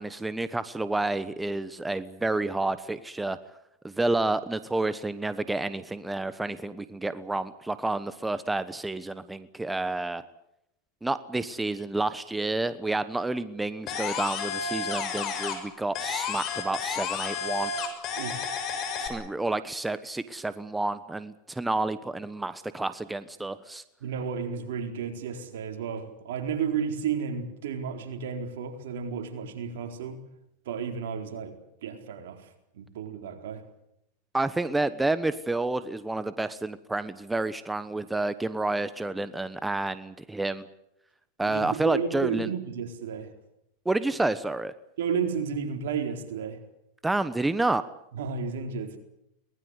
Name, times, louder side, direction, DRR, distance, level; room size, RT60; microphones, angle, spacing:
voice 1, 0.0-3.4 3.8-10.2 11.0-17.7 19.0-23.8 34.3-40.6 41.4-42.5 43.8-44.7 47.0-47.8, right 2 dB, 10° right, 13 dB, 1.1 m, -29 dB
sound 1, 13.9-15.7 15.9-19.1, left 6 dB, 45° left, 6.4 m, -31 dB
voice 2, 18.2-18.5 24.0-30.2 30.7-32.5 32.7-33.6 41.4-43.3 45.0-46.6 48.1-49.0, right 6 dB, 75° right, 4 dB, 4.2 m, -32 dB
23.0 x 20.0 x 8.1 m, 0.80 s
hypercardioid pair, 110°, 0 cm